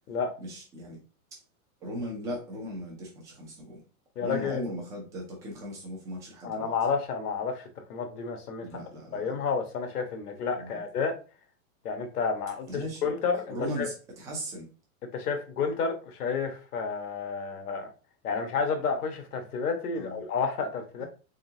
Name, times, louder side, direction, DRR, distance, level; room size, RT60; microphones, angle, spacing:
voice 1, 0.4-1.0 1.3-1.4 1.8-3.8 4.2-6.7 8.6-9.4 10.5-10.8 12.7-13.1 13.5-14.7 19.9-20.2 21.0-21.1, equal, 10° right, -2 dB, 0.4 m, -38 dB
voice 2, 4.2-4.6 6.4-8.7 9.1-11.1 11.8-13.9 15.1-17.9 18.2-21.1, left 5 dB, 85° left, 5 dB, 1.2 m, -30 dB
3.8 x 3.4 x 2.7 m, 0.35 s
hypercardioid pair, 150°, 45 cm